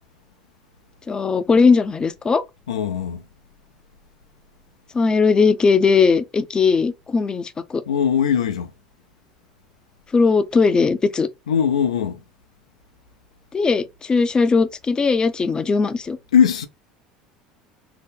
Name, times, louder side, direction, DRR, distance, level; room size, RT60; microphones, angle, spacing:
voice 1, 1.1-2.4 4.9-7.8 10.1-11.3 13.5-16.2, left 4 dB, 25° left, 0.5 m, -18 dB
voice 2, 2.7-3.2 7.9-8.7 11.5-12.2 16.3-16.7, left 8 dB, 85° left, 0.4 m, -20 dB
2.7 x 2.0 x 3.5 m
hypercardioid pair, 75°, 3 cm